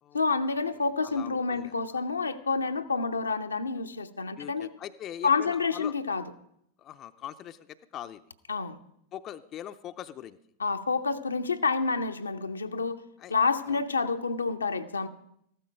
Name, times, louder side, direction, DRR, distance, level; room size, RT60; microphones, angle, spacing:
voice 1, 0.1-4.7 5.2-6.2 8.5-8.8 10.6-13.0 13.3-15.1, left 4 dB, 75° left, 0.7 m, -28 dB
voice 2, 0.7-2.0 4.4-6.0 6.8-8.2 9.1-10.4 13.2-13.3 13.6-13.8, left 11 dB, 30° left, 0.5 m, -42 dB
14.5 x 12.5 x 5.1 m
figure-of-eight pair, 90°, 0 cm